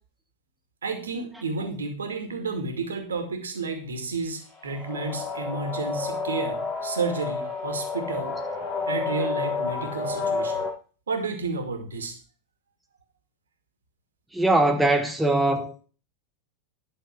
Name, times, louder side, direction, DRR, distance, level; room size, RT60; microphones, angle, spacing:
voice 1, 0.8-8.3 8.9-10.6 11.1-12.2, right 3 dB, 70° right, 2.5 m, -31 dB
sound 1, 4.5-10.7, left 4 dB, 30° left, 6.8 m, -30 dB
voice 2, 14.3-15.8, right 2 dB, 5° right, 1.2 m, -22 dB
12.0 x 6.7 x 5.9 m
figure-of-eight pair, 90°, 0 cm